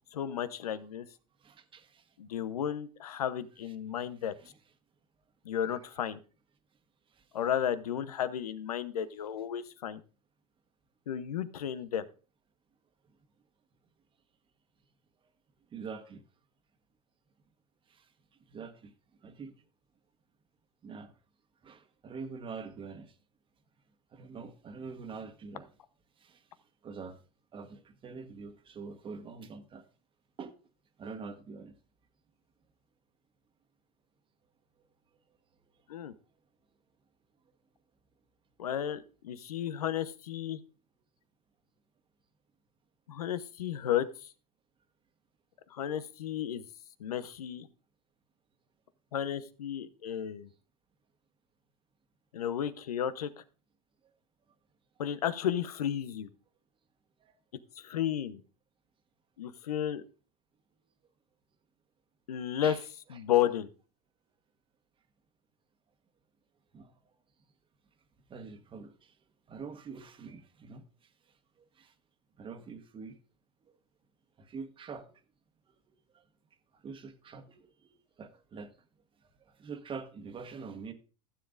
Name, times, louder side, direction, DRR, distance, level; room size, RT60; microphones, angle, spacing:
voice 1, 0.1-1.1 2.2-4.3 5.4-6.2 7.3-10.0 11.1-12.1 35.9-36.1 38.6-40.6 43.1-44.3 45.7-46.6 47.0-47.7 49.1-50.5 52.3-53.3 55.0-56.3 57.8-58.4 59.4-60.0 62.3-62.8 63.1-63.7, left 10 dB, 90° left, 0.9 m, -33 dB
voice 2, 1.4-2.0 4.4-4.5 15.7-16.2 17.9-18.0 18.5-18.9 19.2-19.5 20.8-21.1 21.6-23.1 24.1-25.7 26.2-26.4 26.8-27.2 27.5-29.8 30.4-30.5 31.0-31.7 57.2-57.3 62.6-62.8 63.1-63.2 66.7-66.9 68.3-69.1 69.5-70.8 71.8-71.9 72.4-73.2 74.4-75.1 76.8-78.7 79.4-80.9, right 5 dB, 25° right, 1.3 m, -45 dB
15.5 x 7.5 x 2.5 m
hypercardioid pair, 105°, 19 cm